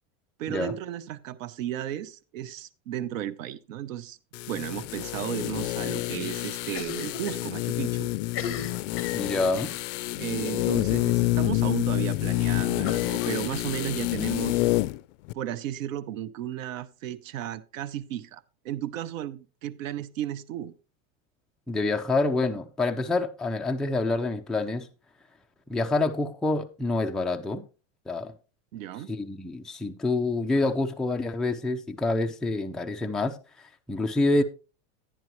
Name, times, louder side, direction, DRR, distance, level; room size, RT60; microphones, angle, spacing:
voice 1, 0.4-4.2 4.5-8.1 10.2-14.6 15.3-20.7 28.7-29.1, right 11 dB, 90° right, 0.8 m, -34 dB
sound 1, 4.3-15.0 15.3-15.4, left 19 dB, 65° left, 0.5 m, -28 dB
Cough, 6.7-7.5 7.8-7.9 8.2-9.8 10.5-10.8 11.1-11.2 11.5-11.6 12.8-14.1, left 8 dB, 35° left, 1.5 m, -38 dB
voice 2, 9.1-9.7 21.7-24.9 25.7-27.6 28.1-28.3 29.1-34.4, left 2 dB, ahead, 0.4 m, -27 dB
11.0 x 10.0 x 3.0 m
supercardioid pair, 135°, 38 cm